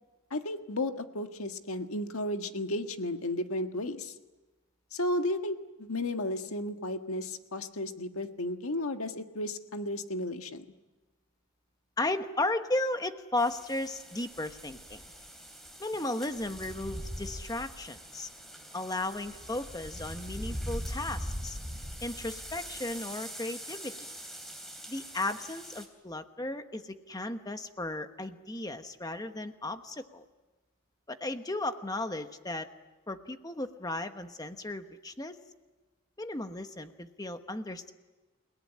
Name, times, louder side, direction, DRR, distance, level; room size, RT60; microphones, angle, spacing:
voice 1, 0.3-4.1 4.9-10.6, left 1 dB, 85° left, 6 dB, 1.6 m, -33 dB
voice 2, 12.0-15.0 15.8-18.3 18.7-21.6 22.0-23.9 24.9-30.2 31.1-32.7 33.1-35.4 36.2-37.9, left 2 dB, 15° left, 8 dB, 1.2 m, -35 dB
sound 1, 13.4-25.9, equal, ahead, 3.7 m, -42 dB
30.0 x 18.5 x 10.0 m, 1.2 s
head